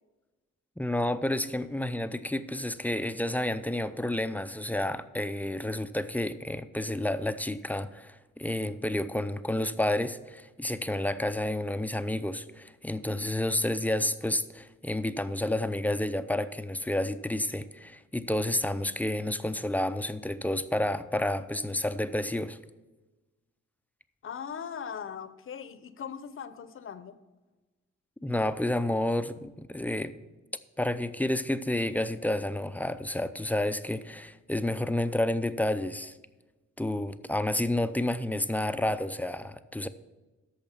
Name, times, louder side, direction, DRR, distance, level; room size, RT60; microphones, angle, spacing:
voice 1, 0.8-22.6 28.2-30.2 30.8-36.2 36.8-39.9, left 1 dB, 5° left, 0.4 m, -30 dB
voice 2, 24.2-27.2, left 7 dB, 45° left, 0.7 m, -39 dB
8.8 x 6.4 x 5.9 m
cardioid pair, 90°, 30 cm